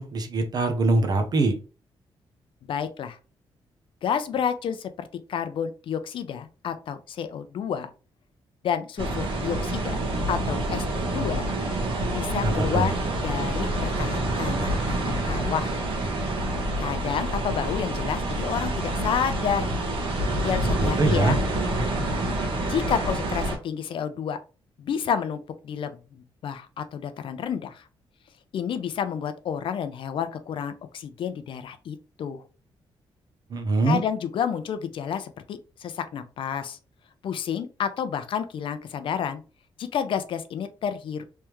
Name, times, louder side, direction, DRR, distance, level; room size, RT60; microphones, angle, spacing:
voice 1, 0.0-1.6 12.4-12.9 20.8-21.3 33.5-34.0, right 2 dB, 45° right, 6 dB, 0.7 m, -23 dB
voice 2, 2.6-3.2 4.0-7.9 8.6-10.0 10.3-11.4 12.1-13.0 13.2-15.7 16.8-19.7 20.4-21.4 22.7-24.4 24.8-27.8 28.5-32.4 33.8-36.8 37.2-39.4 39.8-41.2, left 8 dB, 65° left, 10 dB, 0.5 m, -30 dB
sound 1, 9.0-23.6, right 1 dB, 65° right, 1.4 m, -27 dB
3.5 x 3.2 x 3.0 m, 0.34 s
wide cardioid pair, 145°, 10 cm